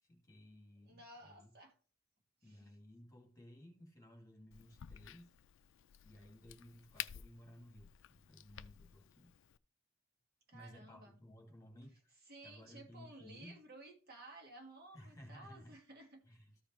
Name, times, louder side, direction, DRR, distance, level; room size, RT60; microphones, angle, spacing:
voice 1, 0.1-1.5 2.4-5.3 6.0-9.3 10.5-13.6 14.9-15.8 16.3-16.5, equal, 15° left, 2.1 m, -57 dB
voice 2, 0.8-1.7 2.4-2.7 10.5-11.2 12.2-16.2, right 2 dB, 50° right, 1.6 m, -56 dB
Crack, 4.5-9.6, left 11 dB, 65° left, 0.4 m, -51 dB
13.5 x 5.0 x 3.1 m
head